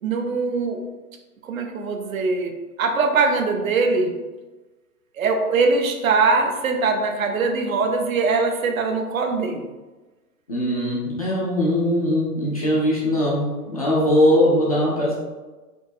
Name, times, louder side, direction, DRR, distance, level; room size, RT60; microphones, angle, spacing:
voice 1, 0.0-0.8 1.4-4.2 5.2-9.7, right 4 dB, 60° right, 5 dB, 0.6 m, -22 dB
voice 2, 10.5-15.1, left 1 dB, 25° left, -7 dB, 0.4 m, -20 dB
4.4 x 2.6 x 2.6 m, 1.2 s
hypercardioid pair, 140°, 47 cm